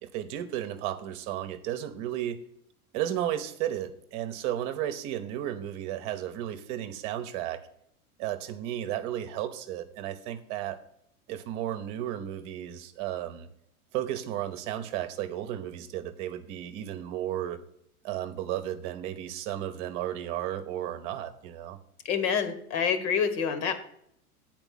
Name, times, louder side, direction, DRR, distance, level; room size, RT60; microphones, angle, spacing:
voice 1, 0.0-2.4 2.9-7.6 8.2-10.8 11.3-13.5 13.9-17.6 18.0-21.8, right 11 dB, 45° right, 8 dB, 1.0 m, -33 dB
voice 2, 22.0-23.7, left 7 dB, 50° left, 9 dB, 1.6 m, -27 dB
9.0 x 4.6 x 7.4 m, 0.71 s
figure-of-eight pair, 90°, 44 cm